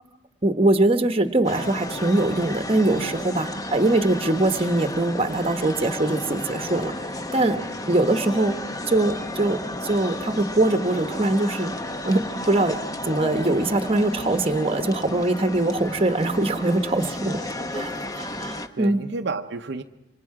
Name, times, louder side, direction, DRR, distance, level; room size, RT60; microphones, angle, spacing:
voice 1, 0.4-6.9 7.3-7.6 7.9-8.6 8.9-11.7 12.0-12.8 13.1-17.4 17.7-17.9 18.1-19.0, right 2 dB, 30° right, 1.1 m, -22 dB
sound 1, 1.4-18.7, left 1 dB, 20° left, 0.8 m, -33 dB
voice 2, 7.3-7.7 17.1-17.4 18.8-19.8, right 3 dB, 60° right, 0.7 m, -32 dB
27.0 x 25.0 x 4.8 m
head